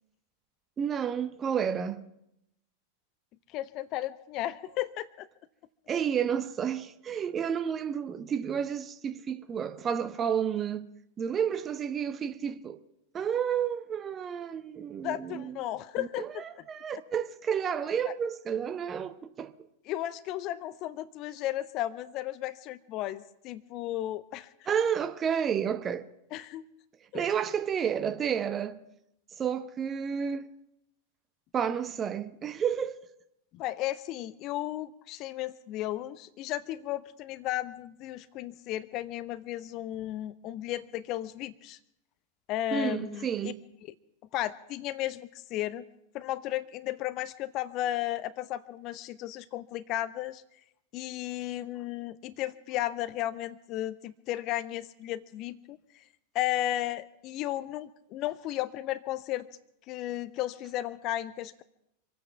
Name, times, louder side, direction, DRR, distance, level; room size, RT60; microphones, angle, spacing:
voice 1, 0.8-2.0 5.9-10.9 11.2-12.8 13.1-15.6 16.0-19.5 24.7-26.1 27.1-28.8 29.4-30.5 31.5-33.0 42.7-43.6, right 8 dB, 25° right, 0.9 m, -31 dB
voice 2, 3.5-5.3 15.0-16.4 16.9-17.0 18.0-18.1 19.9-24.5 26.3-26.6 27.1-27.3 33.5-41.8 42.5-43.5 44.3-45.8 46.1-50.4 50.9-56.0 56.3-59.5 59.9-61.6, left 14 dB, 40° left, 0.6 m, -34 dB
25.5 x 9.2 x 5.8 m
figure-of-eight pair, 90°, 0 cm